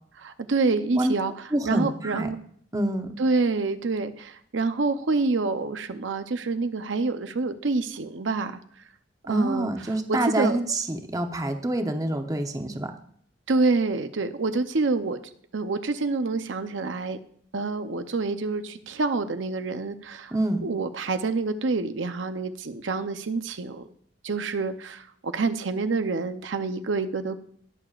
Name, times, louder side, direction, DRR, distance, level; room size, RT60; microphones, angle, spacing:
voice 1, 0.2-2.4 3.2-8.6 9.3-10.6 13.5-15.2 15.5-17.2 17.5-20.3 20.6-23.9 24.2-27.4, right 3 dB, 85° right, 9 dB, 0.7 m, -27 dB
voice 2, 1.5-2.3 2.7-3.2 9.3-12.9 20.3-20.6, right 1 dB, 20° right, 6 dB, 0.8 m, -27 dB
20.0 x 6.9 x 2.4 m, 0.63 s
head